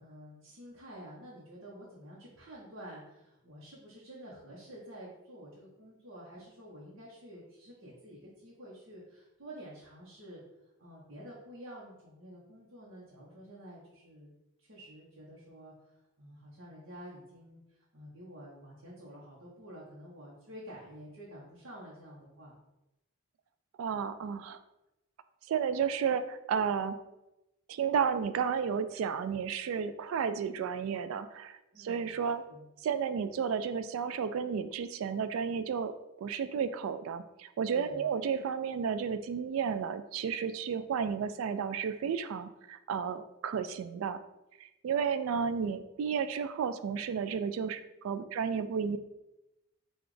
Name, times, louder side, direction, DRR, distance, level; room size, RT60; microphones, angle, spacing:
voice 1, 0.0-10.4 10.8-14.3 14.6-22.6 31.7-32.7 37.7-38.1, equal, 65° right, -6 dB, 1.0 m, -50 dB
voice 2, 23.8-24.6 25.5-27.0 27.7-32.4 32.8-35.9 36.2-44.2 44.6-49.0, right 6 dB, 90° right, 12 dB, 0.3 m, -32 dB
5.9 x 2.4 x 3.2 m, 0.93 s
head